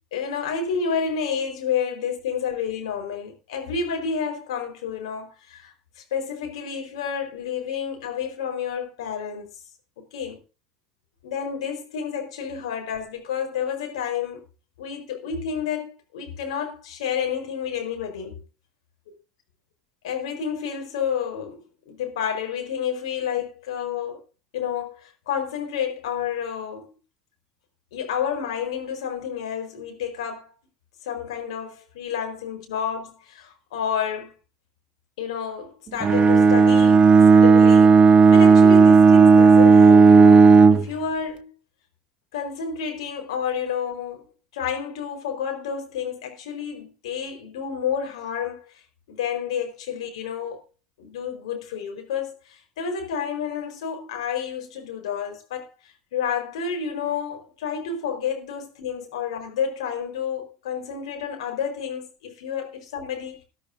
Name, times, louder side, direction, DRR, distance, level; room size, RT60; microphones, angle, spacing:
voice 1, 0.1-9.5 10.0-10.4 11.2-14.4 14.8-18.4 19.1-19.2 20.0-21.6 21.9-24.2 24.5-26.9 27.9-30.5 31.0-34.3 35.2-41.5 42.3-44.3 44.5-48.8 49.1-50.6 51.0-63.4, left 7 dB, 70° left, 4.5 m, -30 dB
Bowed string instrument, 36.0-40.9, right 5 dB, 30° right, 0.8 m, -12 dB
19.0 x 12.0 x 2.7 m
hypercardioid pair, 75°, 3 cm